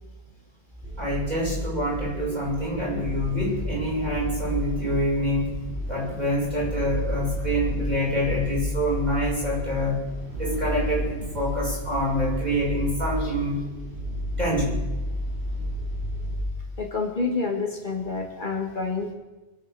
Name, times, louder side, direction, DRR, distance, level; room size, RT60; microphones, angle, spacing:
sound 1, 0.8-16.4, equal, 80° right, 5.8 m, -31 dB
voice 1, 1.0-5.5 5.9-10.0 10.4-13.6 14.4-14.8, equal, 40° right, -6 dB, 6.5 m, -26 dB
voice 2, 16.8-19.1, left 4 dB, 45° left, 3 dB, 1.8 m, -28 dB
24.0 x 8.8 x 6.8 m, 1.1 s
omnidirectional pair, 1.1 m